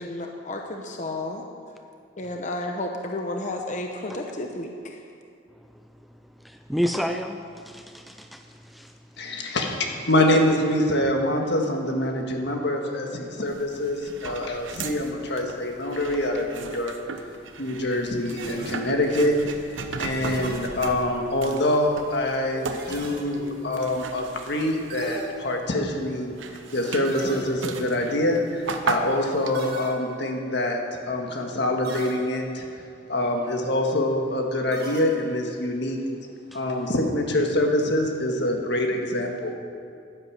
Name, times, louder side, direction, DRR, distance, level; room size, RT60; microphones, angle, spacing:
voice 1, 0.0-1.4 2.2-5.0, left 2 dB, 40° left, 2 dB, 0.9 m, -32 dB
voice 2, 6.4-7.4 7.7-8.4 8.7-8.9 14.2-14.4 36.5-36.6, equal, ahead, 5 dB, 0.4 m, -29 dB
voice 3, 9.2-16.9 17.6-32.6 33.1-36.0 36.5-39.5, left 1 dB, 65° left, 2 dB, 1.7 m, -25 dB
sound 1, 13.5-25.6 26.0-29.8, right 4 dB, 90° right, 0.9 m, -36 dB
sound 2, 18.4-19.2 20.2-21.2 22.8-23.6 24.9-25.9 27.0-27.9 29.5-30.5 31.8-32.7 34.7-35.6, right 2 dB, 55° right, 1.7 m, -39 dB
11.0 x 10.5 x 7.6 m, 2.4 s
head